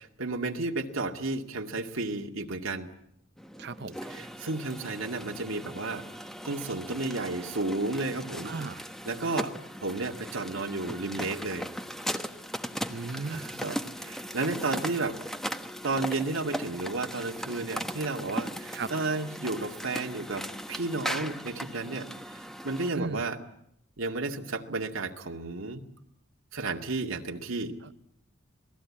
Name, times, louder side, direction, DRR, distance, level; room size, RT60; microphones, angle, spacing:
voice 1, 0.0-2.9 4.0-8.5 9.1-9.5 9.8-11.7 13.3-15.2 15.8-23.4 24.0-25.8 26.5-27.7, right 3 dB, 85° right, 2 dB, 2.2 m, -32 dB
sound 1, 3.4-22.9, equal, ahead, 1.2 m, -38 dB
voice 2, 3.6-4.0 8.4-8.8 12.9-13.5 18.7-18.9 22.9-23.2, right 4 dB, 55° right, 13 dB, 0.9 m, -35 dB
28.5 x 20.0 x 8.7 m, 0.75 s
head